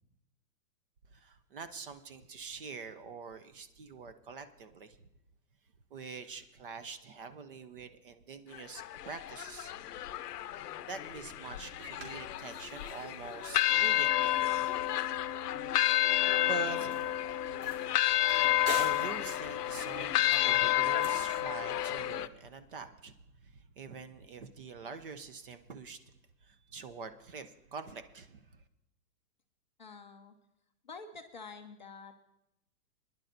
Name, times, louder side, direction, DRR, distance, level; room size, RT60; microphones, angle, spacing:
voice 1, 1.1-5.0 5.9-9.7 10.8-14.5 16.5-17.2 18.5-23.1 23.4-26.0 26.4-28.6, right 4 dB, 35° right, 11 dB, 0.5 m, -45 dB
sound 1, 8.5-22.3, left 13 dB, 80° left, 0.7 m, -30 dB
sound 2, 11.0-21.5, right 2 dB, 55° right, 3.3 m, -48 dB
voice 2, 29.8-30.3 30.8-32.2, left 4 dB, 35° left, 4 dB, 0.4 m, -48 dB
23.5 x 10.5 x 2.6 m, 0.86 s
hypercardioid pair, 160°, 47 cm